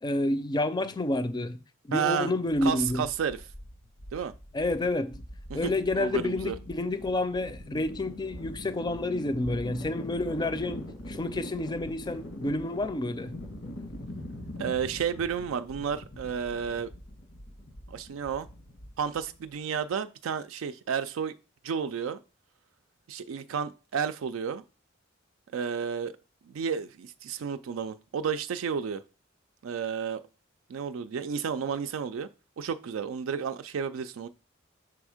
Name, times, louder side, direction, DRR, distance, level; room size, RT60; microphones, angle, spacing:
voice 1, 0.0-1.6 1.8-3.0 4.5-5.2 5.5-13.3, left 2 dB, 20° left, 0.4 m, -29 dB
voice 2, 1.9-2.3 2.6-3.4 4.1-4.3 5.5-6.6 14.6-16.9 17.9-18.5 19.0-21.4 21.6-22.2 23.1-24.6 25.5-26.1 26.5-29.0 29.6-30.2 30.7-32.3 32.6-34.3, right 7 dB, 90° right, 0.4 m, -31 dB
sound 1, 2.5-19.5, left 1 dB, 90° left, 1.5 m, -43 dB
6.0 x 3.5 x 4.9 m
head